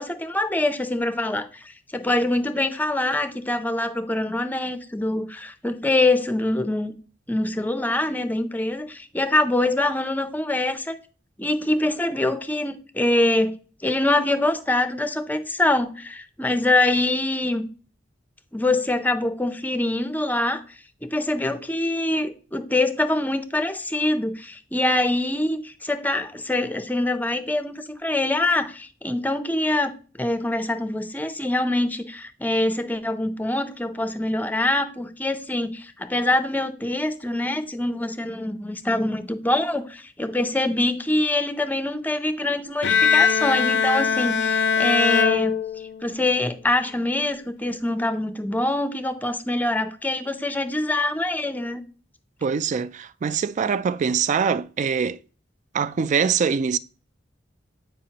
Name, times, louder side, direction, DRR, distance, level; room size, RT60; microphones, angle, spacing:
voice 1, 0.0-6.9 7.3-11.0 11.4-13.5 13.8-17.7 18.5-20.6 21.0-29.9 30.2-45.6 46.0-51.8, left 2 dB, 10° left, 0.6 m, -24 dB
Bowed string instrument, 42.8-46.2, left 6 dB, 70° left, 0.5 m, -21 dB
voice 2, 52.4-55.2 55.7-56.8, right 6 dB, 40° right, 0.3 m, -23 dB
8.9 x 5.0 x 2.8 m
head